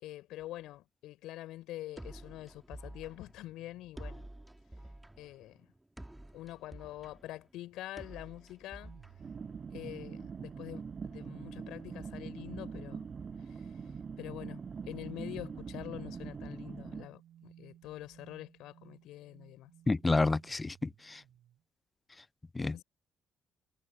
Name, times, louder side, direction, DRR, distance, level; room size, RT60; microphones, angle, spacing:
voice 1, 0.0-4.3 5.2-5.7 6.3-9.0 9.7-13.1 13.5-13.7 14.2-19.7 22.7-22.8, left 15 dB, 70° left, 4.4 m, -45 dB
sound 1, 2.0-9.9, right 1 dB, 10° right, 3.0 m, -50 dB
sound 2, 8.8-21.6, right 11 dB, 65° right, 3.2 m, -59 dB
sound 3, 9.2-17.1, right 5 dB, 45° right, 6.2 m, -43 dB
voice 2, 19.9-21.2 22.5-22.8, left 3 dB, 25° left, 0.4 m, -30 dB
hypercardioid pair, 45°, 0 cm